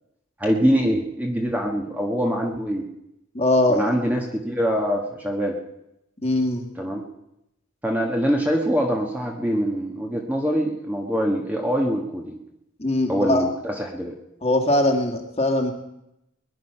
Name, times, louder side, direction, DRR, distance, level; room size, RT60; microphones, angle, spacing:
voice 1, 0.4-2.8 3.7-5.6 6.8-7.0 7.8-12.4 13.1-14.1, equal, 5° right, 1 dB, 1.3 m, -24 dB
voice 2, 3.3-3.9 6.2-6.7 12.8-13.4 14.4-15.7, left 1 dB, 30° left, 3 dB, 1.9 m, -21 dB
21.0 x 10.5 x 5.7 m, 0.85 s
head